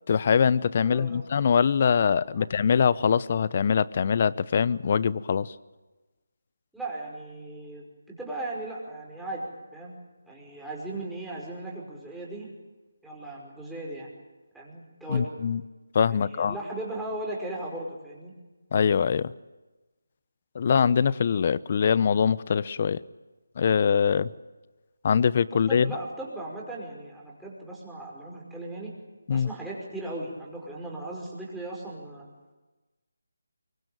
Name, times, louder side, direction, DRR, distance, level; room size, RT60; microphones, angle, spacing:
voice 1, 0.1-5.5 15.1-15.6 15.9-16.6 18.7-19.3 20.5-23.0 23.6-24.3 25.0-25.9 29.3-29.5, left 6 dB, 40° left, 19 dB, 0.8 m, -23 dB
voice 2, 0.8-1.2 2.3-2.5 6.7-9.9 10.2-12.5 13.0-14.1 14.5-15.3 16.1-18.3 25.5-28.9 29.3-32.3, right 2 dB, ahead, -4 dB, 5.5 m, -37 dB
24.0 x 23.5 x 9.0 m, 1.2 s
figure-of-eight pair, 160°, 0 cm